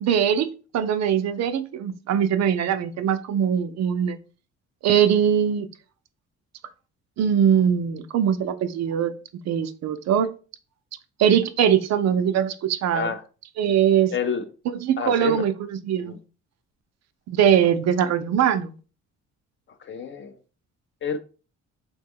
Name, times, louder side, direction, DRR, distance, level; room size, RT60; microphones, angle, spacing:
voice 1, 0.0-4.2 4.8-5.7 7.2-9.1 9.5-10.3 11.2-13.1 13.6-14.1 14.8-16.2 17.3-18.7, right 9 dB, 60° right, 0.4 m, -21 dB
voice 2, 14.1-14.4 15.0-15.4 16.0-16.2 19.8-20.4 21.0-21.2, left 6 dB, 40° left, 0.4 m, -28 dB
3.0 x 2.2 x 3.5 m
cardioid pair, 90°, 30 cm